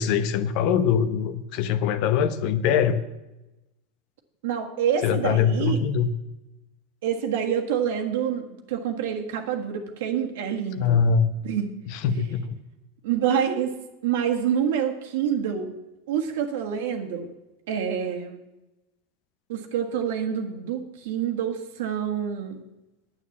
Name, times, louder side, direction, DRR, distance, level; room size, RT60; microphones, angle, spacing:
voice 1, 0.0-3.0 5.0-6.1 10.8-11.3 11.9-12.6, left 7 dB, 60° left, 12 dB, 0.9 m, -23 dB
voice 2, 4.4-5.8 7.0-11.0 11.4-11.8 13.0-13.7 14.0-15.7 16.1-17.3 17.7-18.4 19.5-22.6, right 8 dB, 75° right, 4 dB, 1.6 m, -27 dB
9.2 x 8.8 x 7.2 m, 0.99 s
supercardioid pair, 120°, 0 cm